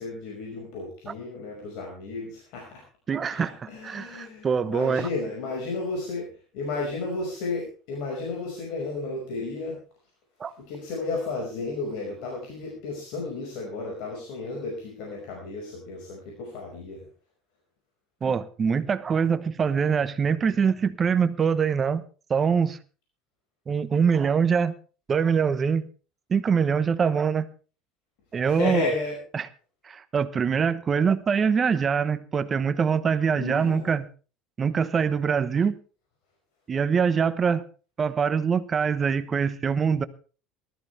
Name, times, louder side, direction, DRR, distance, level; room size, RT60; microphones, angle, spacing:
voice 1, 0.0-2.8 3.3-6.3 6.5-9.8 10.7-17.1 28.5-29.2 33.3-33.9, left 3 dB, 70° left, 5.4 m, -33 dB
voice 2, 3.1-5.1 10.4-10.5 18.2-22.0 22.3-22.8 23.7-24.7 25.1-25.9 26.3-27.5 28.3-28.9 29.3-29.5 29.8-34.1 34.6-35.8 36.7-37.6 38.0-40.0, right 6 dB, 25° right, 1.0 m, -24 dB
19.0 x 13.5 x 3.4 m
cardioid pair, 140°, 0 cm